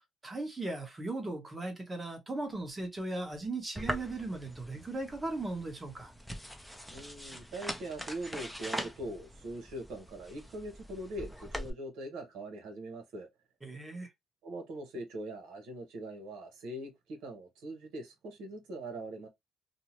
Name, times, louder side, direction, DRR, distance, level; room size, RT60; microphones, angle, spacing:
voice 1, 0.2-6.1 13.6-14.1, right 2 dB, 20° right, 1.0 m, -37 dB
sound 1, 3.8-11.7, equal, ahead, 0.5 m, -42 dB
voice 2, 6.9-13.3 14.4-19.3, right 1 dB, 85° right, 0.9 m, -42 dB
2.7 x 2.1 x 2.9 m
cardioid pair, 90°, 0 cm